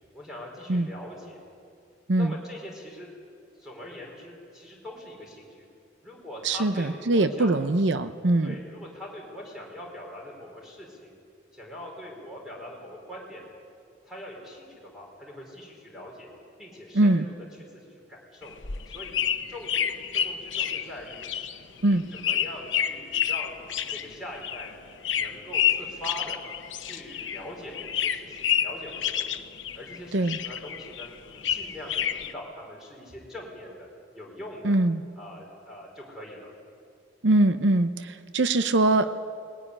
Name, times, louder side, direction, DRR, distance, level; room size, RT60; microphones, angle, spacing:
voice 1, 0.1-1.4 2.2-3.1 3.6-5.7 6.0-7.6 8.4-11.1 11.5-13.5 14.1-16.3 16.6-17.3 17.7-18.5 18.9-19.1 19.5-21.3 21.8-24.7 25.1-26.4 26.7-29.5 29.8-31.1 31.3-33.9 34.1-34.8 35.2-36.5 38.6-38.7, left 1 dB, 5° right, -2 dB, 4.4 m, -42 dB
voice 2, 6.4-8.5 16.9-17.2 21.8-22.0 30.1-30.4 34.6-35.0 37.2-39.1, right 2 dB, 75° right, 10 dB, 0.8 m, -22 dB
sound 1, 18.4-27.5 27.7-30.0 30.2-32.3, left 9 dB, 90° left, 0.9 m, -29 dB
20.0 x 18.5 x 10.0 m, 2.4 s
head